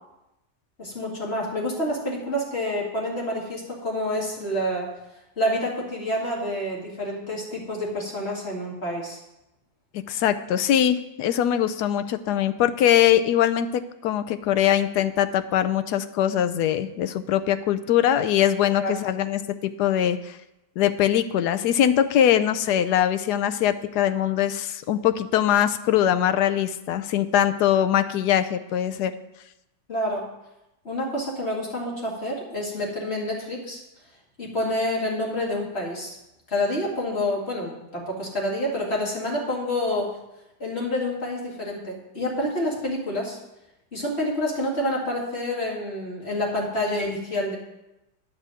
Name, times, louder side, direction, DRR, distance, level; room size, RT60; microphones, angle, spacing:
voice 1, 0.8-4.9 5.4-9.2 18.7-19.0 29.9-30.3 30.8-33.8 34.4-36.2 36.5-40.2 40.6-43.4 43.9-47.6, left 1 dB, 35° left, -3 dB, 2.5 m, -28 dB
voice 2, 9.9-20.4 20.8-29.1, left 10 dB, 75° left, 10 dB, 1.1 m, -22 dB
9.9 x 5.0 x 7.7 m, 0.91 s
omnidirectional pair, 1.8 m